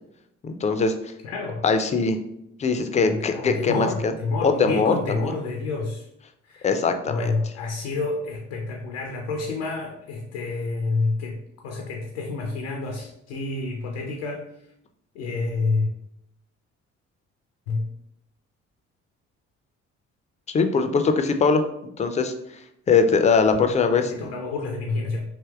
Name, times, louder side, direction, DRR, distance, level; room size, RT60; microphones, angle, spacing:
voice 1, 0.4-0.9 1.6-2.2 2.6-4.1 4.4-5.3 6.6-7.3 20.5-21.6 22.0-22.3 22.9-24.3, left 4 dB, 20° left, 7 dB, 0.3 m, -21 dB
voice 2, 1.2-1.6 3.0-6.1 6.4-6.7 7.1-11.4 11.6-14.5 15.1-15.9 17.7-17.8 23.5-25.2, left 3 dB, 80° left, 1 dB, 0.5 m, -29 dB
3.4 x 2.6 x 2.2 m, 0.79 s
hypercardioid pair, 45°, 37 cm